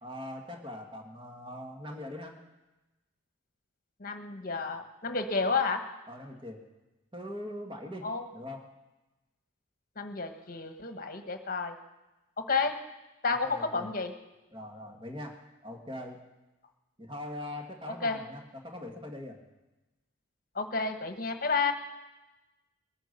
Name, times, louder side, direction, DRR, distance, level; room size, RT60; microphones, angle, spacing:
voice 1, 0.0-2.4 6.1-6.6 7.1-8.7 13.2-13.9 14.5-16.3 17.0-19.4, left 1 dB, 25° right, 2 dB, 1.7 m, -42 dB
voice 2, 4.0-5.8 8.0-8.3 10.0-11.7 12.4-12.7 13.2-14.1 18.0-18.2 20.5-21.7, left 4 dB, 45° left, 7 dB, 1.2 m, -30 dB
20.5 x 9.2 x 6.7 m, 1.1 s
head